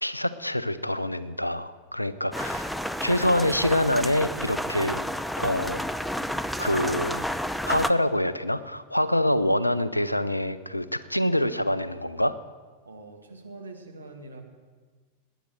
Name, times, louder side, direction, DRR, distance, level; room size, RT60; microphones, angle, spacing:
voice 1, 0.0-2.7 3.0-5.0 5.4-5.8 6.6-7.3 7.6-12.4, left 1 dB, 85° left, 15 dB, 0.6 m, -25 dB
sound 1, 2.3-7.9, equal, ahead, 0.5 m, -31 dB
voice 2, 12.9-14.4, right 2 dB, 80° right, 2 dB, 1.9 m, -44 dB
20.5 x 9.2 x 6.5 m, 1.4 s
figure-of-eight pair, 90°, 0 cm